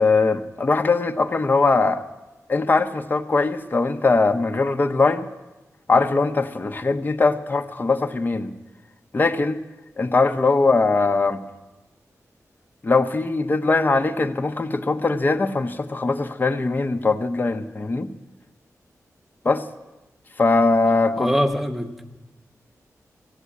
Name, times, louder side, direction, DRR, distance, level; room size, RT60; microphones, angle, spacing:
voice 1, 0.0-2.0 2.5-5.3 5.9-8.5 9.1-9.6 10.0-11.4 12.8-18.1 19.4-19.6 20.4-21.3, left 3 dB, 35° left, 0.8 m, -21 dB
voice 2, 21.2-22.2, equal, 5° right, 1.0 m, -24 dB
15.5 x 8.1 x 9.8 m
wide cardioid pair, 115°, 6 cm